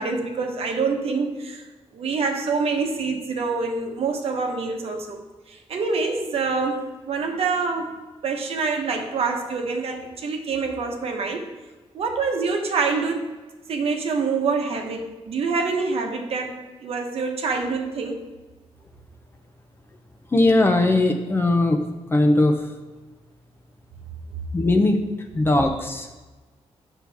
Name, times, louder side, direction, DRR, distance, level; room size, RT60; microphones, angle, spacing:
voice 1, 0.0-1.6 1.9-5.2 5.5-8.0 8.2-11.5 11.9-13.2 13.7-18.2, right 4 dB, 65° right, 3 dB, 1.0 m, -26 dB
voice 2, 20.3-21.8 22.1-22.5 24.5-26.2, left 2 dB, 20° left, 5 dB, 0.6 m, -19 dB
8.6 x 6.3 x 3.4 m, 1.2 s
wide cardioid pair, 160°, 11 cm